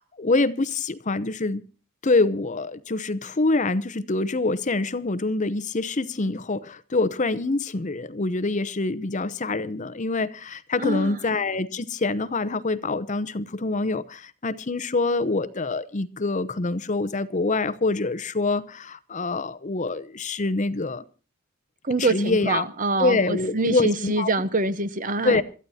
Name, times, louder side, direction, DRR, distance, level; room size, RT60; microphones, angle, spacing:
voice 1, 0.0-1.6 2.0-21.0 22.0-22.7 23.0-24.3 25.2-25.4, left 3 dB, 35° left, 0.7 m, -25 dB
voice 2, 10.8-11.2 21.8-25.4, right 3 dB, 40° right, 0.9 m, -25 dB
27.0 x 13.5 x 2.8 m
head